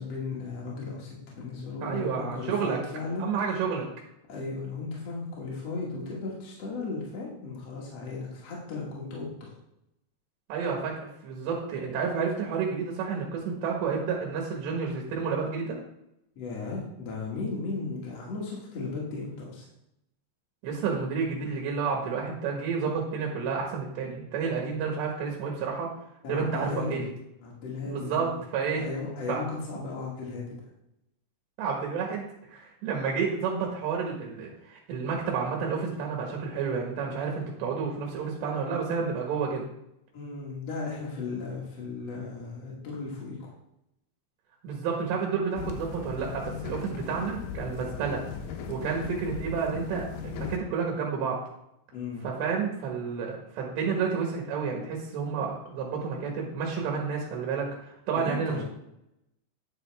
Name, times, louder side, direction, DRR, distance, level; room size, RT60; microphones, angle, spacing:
voice 1, 0.0-3.3 4.3-9.5 16.4-19.7 26.2-27.0 27.4-28.4 28.7-30.6 40.1-43.5 51.9-52.3 58.1-58.6, left 4 dB, 50° left, -4 dB, 2.4 m, -36 dB
voice 2, 1.8-2.8 3.2-3.9 10.5-15.8 20.6-25.9 26.3-27.1 27.9-28.8 29.3-29.4 31.6-39.7 44.6-48.2 48.7-51.4 52.2-58.6, right 5 dB, 85° right, 0 dB, 3.7 m, -30 dB
sound 1, 45.6-50.6, left 6 dB, 75° left, 2.2 m, -38 dB
10.0 x 6.7 x 3.5 m, 0.81 s
omnidirectional pair, 4.8 m